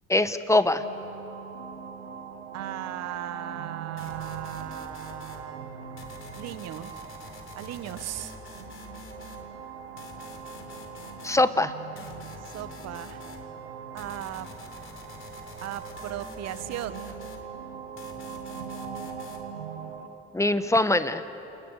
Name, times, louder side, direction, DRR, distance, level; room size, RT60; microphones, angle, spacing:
voice 1, 0.1-0.8 11.2-11.7 20.3-21.2, left 2 dB, 10° left, 11 dB, 1.5 m, -22 dB
sound 1, 0.8-20.1, right 7 dB, 90° right, 1.8 m, -41 dB
voice 2, 2.5-5.7 6.4-7.0 7.6-8.3 12.5-13.2 13.9-14.5 15.6-17.1, right 12 dB, 55° right, 12 dB, 1.5 m, -37 dB
sound 2, 4.0-5.4 6.0-9.5 10.0-11.5 12.0-13.4 14.0-17.5 18.0-19.5, left 5 dB, 40° left, 3.9 m, -47 dB
29.0 x 28.0 x 6.6 m, 3.0 s
hypercardioid pair, 60°, 31 cm